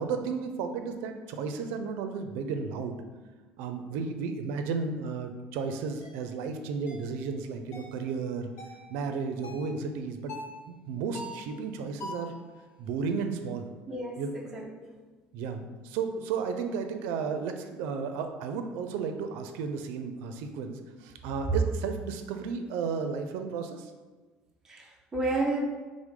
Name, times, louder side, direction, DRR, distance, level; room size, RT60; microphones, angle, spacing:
voice 1, 0.0-3.0 3.6-8.5 8.9-10.3 10.7-12.3 12.8-13.7 14.2-14.3 15.3-23.9, right 5 dB, 85° right, 7 dB, 0.4 m, -33 dB
sound 1, 6.0-6.2 6.9-7.1 7.7-8.0 8.6-8.8 9.4-9.7 10.3-10.6 11.1-11.5 12.0-12.4, left 1 dB, 60° left, 1.0 m, -42 dB
voice 2, 13.9-14.9 24.6-25.6, right 2 dB, 10° right, -2 dB, 0.5 m, -32 dB
5.9 x 2.1 x 3.7 m, 1.3 s
cardioid pair, 175°, 4 cm